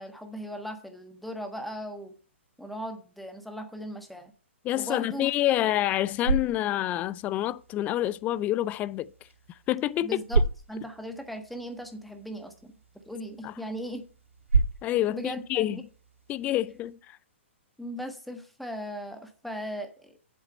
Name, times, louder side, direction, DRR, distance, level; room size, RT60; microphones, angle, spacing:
voice 1, 0.0-2.1 2.6-4.3 4.7-5.3 10.0-10.4 10.7-12.7 13.1-14.0 15.1-15.8 17.8-20.2, equal, ahead, 1.3 m, -38 dB
voice 2, 4.6-9.1 9.7-10.2 13.4-13.5 14.8-15.8 16.3-17.2, left 14 dB, 20° left, 0.4 m, -27 dB
sound 1, 5.8-16.9, right 3 dB, 80° right, 2.7 m, -33 dB
7.8 x 7.2 x 5.4 m
figure-of-eight pair, 120°, 7 cm